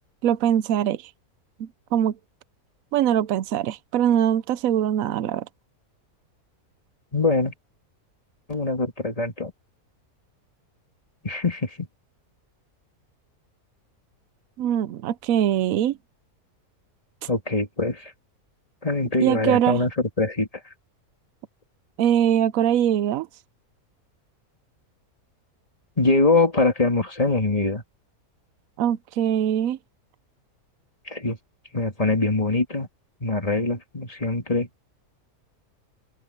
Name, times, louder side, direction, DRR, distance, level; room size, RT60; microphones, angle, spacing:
voice 1, 0.2-1.0 1.6-2.2 2.9-5.5 14.6-16.0 19.2-19.8 22.0-23.3 28.8-29.8, right 10 dB, 70° right, 1.0 m, -22 dB
voice 2, 7.1-7.5 8.5-9.5 11.2-11.9 17.3-18.1 18.8-20.5 26.0-27.8 31.1-31.4 31.7-32.9 33.2-34.7, left 3 dB, 25° left, 2.7 m, -23 dB
open air
omnidirectional pair, 1.6 m